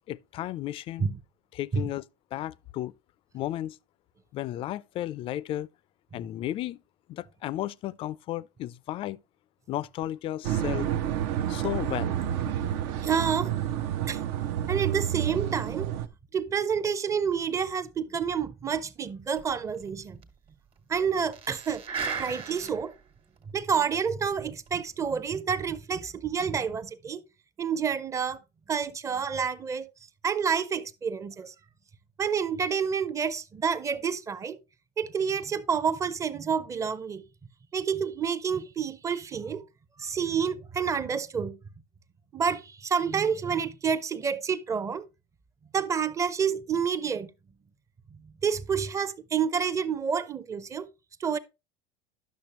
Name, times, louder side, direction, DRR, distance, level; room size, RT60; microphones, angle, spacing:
voice 1, 0.1-1.1 1.5-2.0 2.3-2.9 3.3-3.8 4.3-5.7 6.1-6.8 7.1-9.2 9.7-10.9 11.5-12.3, left 14 dB, 40° left, 0.3 m, -34 dB
sound 1, 10.4-16.1, right 10 dB, 70° right, 0.7 m, -29 dB
voice 2, 13.0-13.5 14.1-14.2 14.7-15.9 16.3-20.2 20.9-21.8 22.2-22.9 23.5-27.2 27.6-28.4 28.7-29.9 30.2-31.5 32.2-34.6 35.0-37.2 37.7-39.6 40.0-41.6 42.3-45.0 45.7-47.3 48.4-50.9 51.2-51.4, right 6 dB, 20° right, 0.6 m, -29 dB
sound 2, 19.4-19.5 19.7-19.8 20.2-20.3 21.2-23.0 23.4-23.5 24.5-24.7, right 6 dB, 40° right, 1.4 m, -36 dB
10.5 x 6.5 x 2.9 m
supercardioid pair, 110°, 14 cm